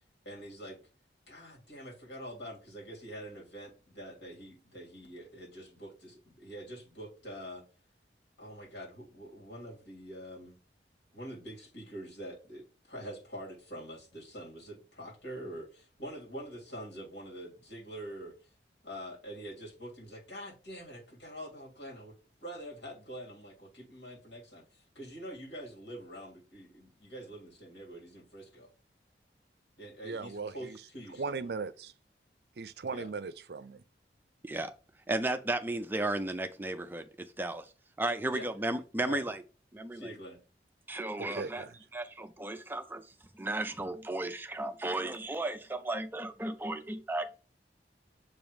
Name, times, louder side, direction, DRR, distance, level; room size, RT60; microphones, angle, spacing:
voice 1, 0.2-0.8 1.3-7.6 8.4-10.6 11.1-18.5 18.8-28.7 29.8-31.5 32.9-33.1 38.3-38.5 39.0-39.2 39.9-40.4, equal, 90° left, 3.2 m, -45 dB
voice 2, 30.0-30.8 31.1-31.9 32.6-33.8 41.2-41.7, right 4 dB, 60° right, 0.5 m, -38 dB
voice 3, 35.1-37.7 38.0-39.4 39.7-40.1 40.9-41.6 41.9-47.4, right 2 dB, 10° right, 0.4 m, -34 dB
7.0 x 3.0 x 5.1 m
head